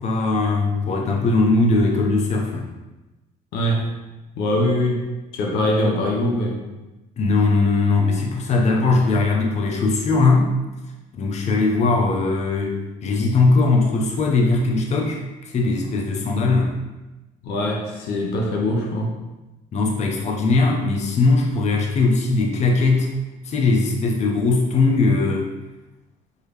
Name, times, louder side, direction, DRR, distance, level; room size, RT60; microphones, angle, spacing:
voice 1, 0.0-2.7 7.2-10.5 11.2-16.7 19.7-23.1 23.4-25.5, left 3 dB, 40° left, 0 dB, 0.7 m, -19 dB
voice 2, 3.5-3.9 4.4-5.1 5.3-6.6 17.4-19.1, left 1 dB, 90° left, 0 dB, 0.9 m, -22 dB
4.6 x 3.2 x 3.2 m, 1.1 s
cardioid pair, 110°, 17 cm